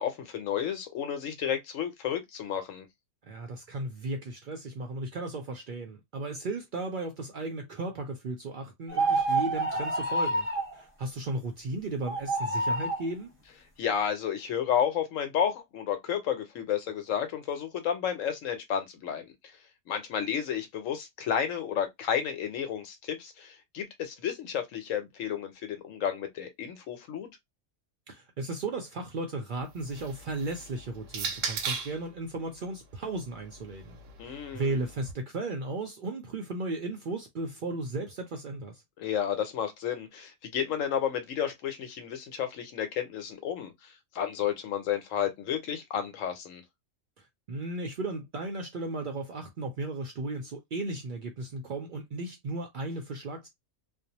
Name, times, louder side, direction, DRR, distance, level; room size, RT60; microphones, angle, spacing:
voice 1, 0.0-2.9 13.8-19.2 19.9-27.3 34.2-34.8 39.0-46.6, left 8 dB, 85° left, 1.1 m, -31 dB
voice 2, 3.2-10.5 10.7-13.3 28.1-34.0 34.2-38.8 47.5-53.5, right 2 dB, 60° right, 0.5 m, -35 dB
sound 1, 8.9-10.7 12.0-13.0, right 2 dB, 10° right, 0.8 m, -28 dB
sound 2, 29.6-32.1 33.0-35.1, right 5 dB, 75° right, 0.9 m, -38 dB
2.6 x 2.0 x 2.8 m
omnidirectional pair, 1.3 m